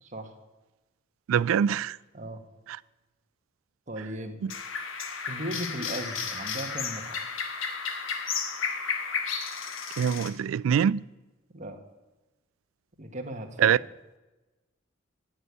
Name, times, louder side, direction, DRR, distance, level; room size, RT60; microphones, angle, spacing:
voice 1, 0.0-0.3 2.1-2.4 3.9-4.4 5.3-7.3 11.5-11.8 13.0-13.9, right 1 dB, 40° right, 1.5 m, -37 dB
voice 2, 1.3-2.0 4.4-4.5 10.0-11.0 13.6-13.8, right 8 dB, 85° right, 0.3 m, -24 dB
sound 1, 4.5-10.3, left 6 dB, 75° left, 1.4 m, -33 dB
9.7 x 8.5 x 9.5 m
head